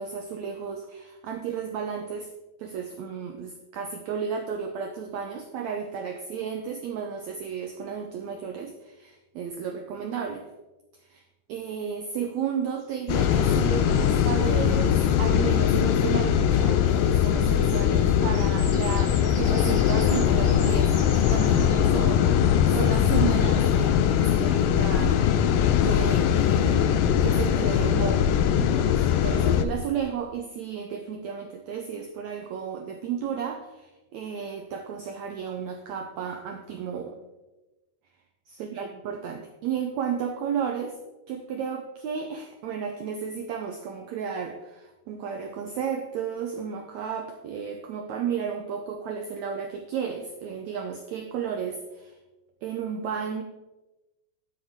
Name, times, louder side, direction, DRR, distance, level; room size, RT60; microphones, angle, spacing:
voice 1, 0.0-2.3 2.6-10.5 11.0-11.2 11.5-25.5 25.8-28.3 28.6-37.2 38.5-41.0 41.3-52.2 52.6-53.4, right 7 dB, 90° right, 4 dB, 1.6 m, -33 dB
sound 1, 12.8-15.7 16.6-16.7 16.9-24.1 25.9-26.0 26.4-26.6, left 2 dB, 45° left, 4.1 m, -45 dB
sound 2, 13.1-29.6, left 9 dB, 80° left, 2.3 m, -21 dB
12.5 x 8.2 x 3.7 m, 1.1 s
omnidirectional pair, 4.3 m